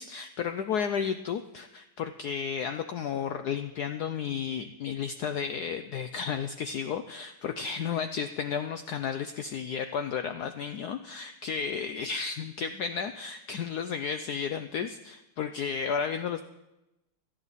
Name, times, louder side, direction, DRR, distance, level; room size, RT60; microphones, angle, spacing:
voice 1, 0.0-16.4, left 7 dB, 90° left, 9 dB, 0.8 m, -33 dB
18.0 x 12.0 x 4.1 m, 0.96 s
omnidirectional pair, 2.4 m